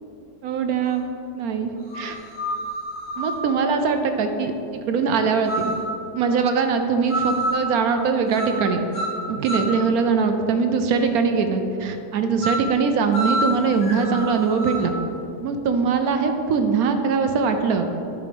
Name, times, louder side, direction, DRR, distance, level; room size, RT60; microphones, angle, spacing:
voice 1, 0.4-2.2 3.2-5.7 6.1-8.9 9.3-14.9 15.4-17.8, right 5 dB, 70° right, 6 dB, 1.0 m, -22 dB
sound 1, 0.9-1.0 1.9-3.5 5.5-5.9 7.1-7.6 8.3-8.7 8.9-9.8 12.4-12.7 13.1-14.9, right 1 dB, 60° left, 2.4 m, -27 dB
9.9 x 4.7 x 5.2 m, 2.8 s
omnidirectional pair, 1.9 m